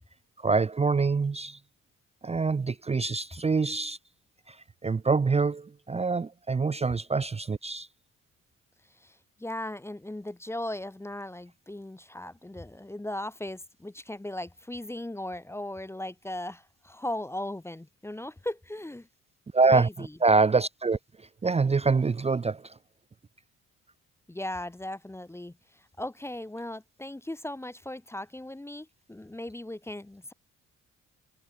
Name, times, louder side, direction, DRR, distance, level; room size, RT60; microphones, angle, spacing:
voice 1, 0.4-1.6 2.2-4.0 4.5-4.6 4.8-7.9 19.5-21.0 21.4-22.7, right 4 dB, 20° right, 0.6 m, -25 dB
voice 2, 8.9-19.1 19.7-20.2 24.3-30.3, left 1 dB, 10° left, 0.8 m, -38 dB
cardioid pair, 90°, 30 cm